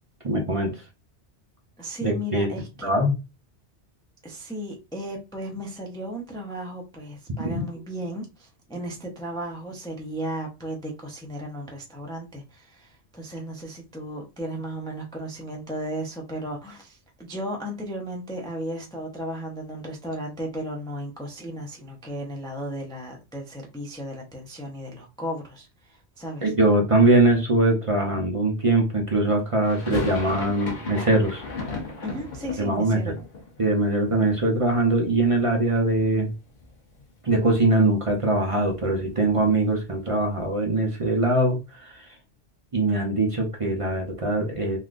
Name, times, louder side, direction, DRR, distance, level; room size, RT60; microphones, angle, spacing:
voice 1, 0.2-0.7 2.0-2.5 2.8-3.1 26.4-31.4 32.6-33.0 33.6-36.3 37.2-42.1 42.7-44.8, right 2 dB, 35° right, 0.6 m, -22 dB
voice 2, 1.8-2.9 4.2-26.5 32.0-33.1, right 1 dB, 5° left, 0.4 m, -35 dB
sound 1, 29.6-35.6 35.8-36.7 37.0-37.1 37.3-39.5, left 4 dB, 45° left, 0.9 m, -37 dB
3.5 x 2.5 x 2.5 m
omnidirectional pair, 1.2 m